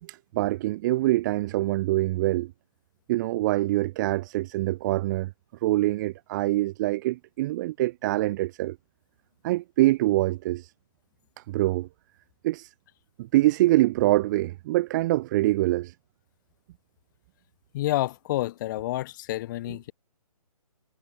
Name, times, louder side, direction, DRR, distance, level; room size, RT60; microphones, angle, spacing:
voice 1, 0.0-2.5 3.1-5.3 5.6-8.8 9.4-10.7 11.4-11.9 12.4-12.7 13.2-15.9, right 17 dB, 30° right, 4.0 m, -24 dB
voice 2, 17.7-19.9, left 15 dB, 30° left, 4.2 m, -29 dB
figure-of-eight pair, 140°, 19 cm